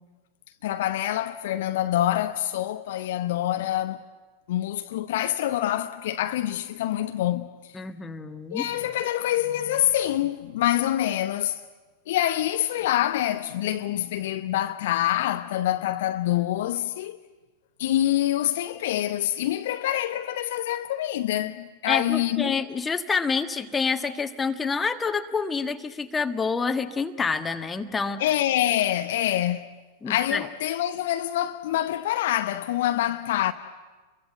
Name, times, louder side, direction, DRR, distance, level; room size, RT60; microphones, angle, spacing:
voice 1, 0.6-4.0 4.5-7.5 8.5-11.6 12.1-17.2 17.8-22.6 28.2-29.7 30.1-33.5, left 13 dB, 55° left, 0.9 m, -26 dB
voice 2, 7.7-8.7 21.9-28.2 30.0-30.5, left 5 dB, 15° left, 1.5 m, -27 dB
29.0 x 22.5 x 8.0 m
figure-of-eight pair, 90°, 0 cm